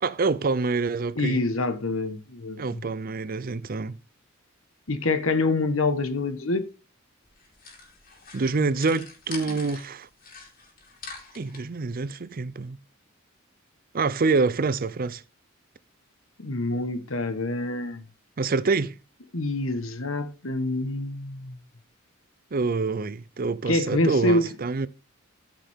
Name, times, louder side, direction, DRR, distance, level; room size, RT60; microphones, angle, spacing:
voice 1, 0.0-1.4 2.6-4.0 8.3-10.1 11.3-12.8 13.9-15.2 18.4-18.9 22.5-24.9, right 4 dB, 45° right, 0.5 m, -26 dB
voice 2, 1.2-2.8 4.9-6.7 16.4-18.0 19.3-21.6 23.7-24.5, left 2 dB, 80° left, 1.4 m, -26 dB
sound 1, 7.2-9.9 10.2-11.6, left 4 dB, 45° left, 3.2 m, -44 dB
14.0 x 5.8 x 3.6 m
head